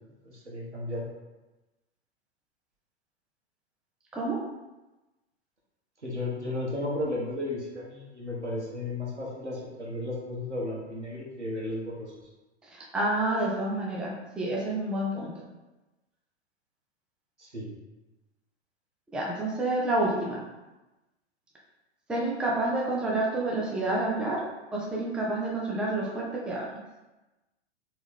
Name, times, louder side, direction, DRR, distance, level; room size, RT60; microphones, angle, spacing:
voice 1, 0.2-1.1 6.0-12.1 17.4-17.7, left 1 dB, 85° right, -4 dB, 1.4 m, -34 dB
voice 2, 12.7-15.3 19.1-20.4 22.1-24.4 24.7-26.8, right 2 dB, 5° right, -4 dB, 0.4 m, -29 dB
4.4 x 3.3 x 3.4 m, 1.1 s
figure-of-eight pair, 100°, 34 cm